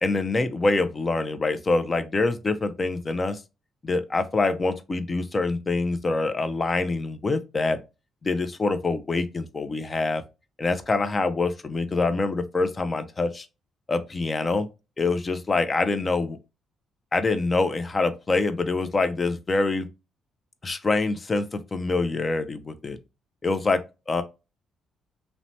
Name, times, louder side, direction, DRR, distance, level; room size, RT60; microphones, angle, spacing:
voice 1, 0.0-3.4 3.8-7.8 8.2-10.2 10.6-13.5 13.9-14.7 15.0-16.4 17.1-19.9 20.6-23.0 23.4-23.8 24.1-24.2, left 3 dB, 30° left, 0.4 m, -25 dB
3.0 x 2.1 x 2.6 m
cardioid pair, 90°, 0 cm